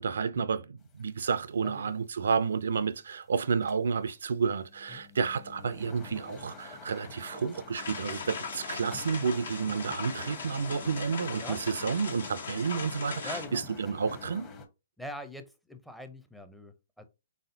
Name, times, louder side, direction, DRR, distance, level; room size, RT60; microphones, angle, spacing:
voice 1, 0.0-14.5, right 5 dB, 75° right, 0.4 m, -31 dB
sound 1, 0.8-3.3 3.6-4.0 4.3-14.7, left 4 dB, 25° left, 0.9 m, -48 dB
sound 2, 7.7-13.5, left 5 dB, 75° left, 1.4 m, -39 dB
voice 2, 13.2-13.6 15.0-17.0, equal, ahead, 0.6 m, -43 dB
4.1 x 3.7 x 2.7 m
hypercardioid pair, 135°, 0 cm